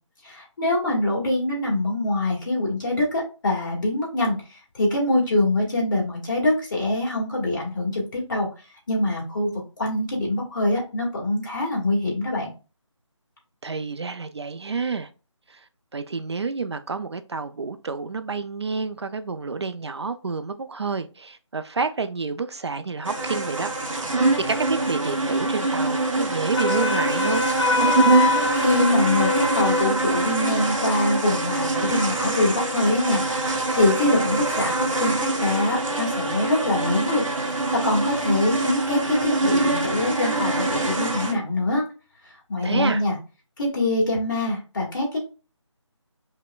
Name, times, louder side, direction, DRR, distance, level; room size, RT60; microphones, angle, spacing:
voice 1, 0.2-8.5 8.9-9.5 9.8-12.5 28.3-37.2 37.8-41.8 42.5-43.1 43.6-45.2, left 2 dB, 40° left, 1.6 m, -24 dB
voice 2, 13.6-15.1 15.5-15.6 15.9-23.7 24.0-27.4 42.6-43.0, right 4 dB, 60° right, 0.4 m, -29 dB
sound 1, 23.0-41.3, right 2 dB, 85° right, 0.9 m, -24 dB
Wind instrument woodwind instrument, 26.5-30.0, left 3 dB, 65° left, 0.8 m, -24 dB
5.1 x 2.1 x 2.2 m
figure-of-eight pair, 155°, 16 cm